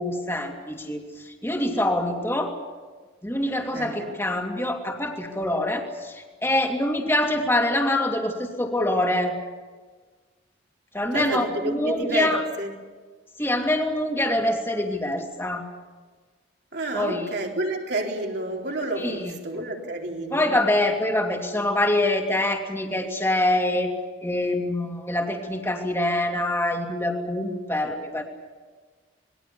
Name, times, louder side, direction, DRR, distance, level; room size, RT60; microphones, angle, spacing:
voice 1, 0.0-2.6 3.2-9.3 10.9-12.4 13.4-15.7 16.9-17.3 19.0-19.3 20.3-23.9 24.2-28.2, left 1 dB, 10° left, 2 dB, 2.8 m, -25 dB
voice 2, 3.7-4.2 11.1-12.7 16.7-20.6, right 2 dB, 55° right, 1 dB, 3.8 m, -30 dB
27.0 x 21.5 x 7.0 m, 1.4 s
head